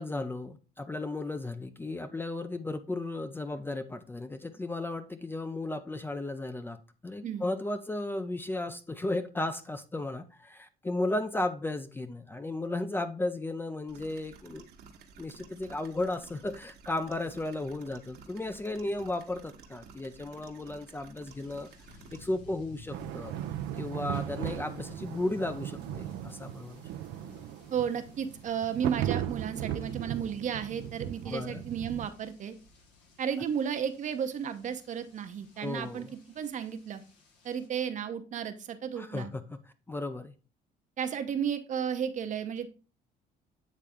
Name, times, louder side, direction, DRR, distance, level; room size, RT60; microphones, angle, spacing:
voice 1, 0.0-14.7 15.2-21.7 22.2-23.3 23.7-26.8 31.3-31.6 35.6-36.1 39.0-39.6 39.9-40.3, left 2 dB, 15° left, 0.4 m, -35 dB
sound 1, 13.9-22.3, right 6 dB, 70° right, 1.2 m, -53 dB
sound 2, 21.2-37.7, left 3 dB, 85° left, 1.5 m, -55 dB
sound 3, 22.9-32.1, right 11 dB, 90° right, 0.5 m, -37 dB
voice 2, 27.7-32.6 33.2-37.0 37.4-39.3 41.0-42.7, right 8 dB, 50° right, 0.7 m, -33 dB
8.3 x 3.3 x 3.5 m
cardioid pair, 110°, 17 cm